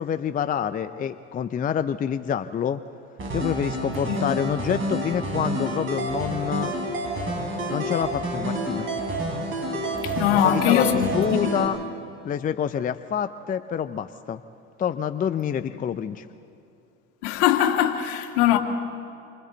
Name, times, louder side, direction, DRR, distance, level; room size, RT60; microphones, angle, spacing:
voice 1, 0.0-2.8 3.3-6.7 7.7-8.9 10.3-11.8 12.2-14.4 14.8-16.3, left 8 dB, 25° left, 0.6 m, -27 dB
sound 1, 3.2-11.7, right 1 dB, 35° right, 6.4 m, -29 dB
voice 2, 9.9-11.6 15.7-15.8 17.2-18.6, left 11 dB, 65° left, 2.3 m, -22 dB
28.0 x 25.5 x 4.0 m
hypercardioid pair, 85°, 36 cm